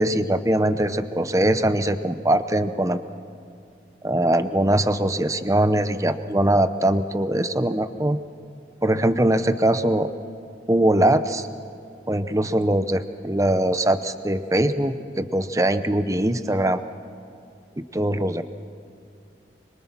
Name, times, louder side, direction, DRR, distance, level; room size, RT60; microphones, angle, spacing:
voice 1, 0.0-3.0 4.0-8.2 8.8-10.1 10.7-11.5 12.1-16.8 17.9-18.4, right 1 dB, 15° right, 11 dB, 0.8 m, -21 dB
26.0 x 23.5 x 6.1 m, 2.5 s
head